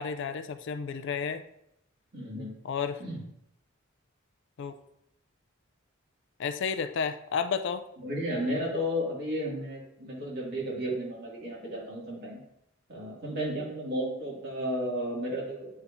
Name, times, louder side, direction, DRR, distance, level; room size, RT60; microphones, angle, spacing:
voice 1, 0.0-1.4 2.6-3.0 4.6-4.7 6.4-7.8, left 6 dB, 60° left, 10 dB, 0.4 m, -31 dB
voice 2, 2.1-2.5 3.0-3.3 8.0-12.4 12.9-15.8, equal, 50° right, -5 dB, 2.3 m, -33 dB
8.4 x 4.4 x 2.7 m, 0.77 s
head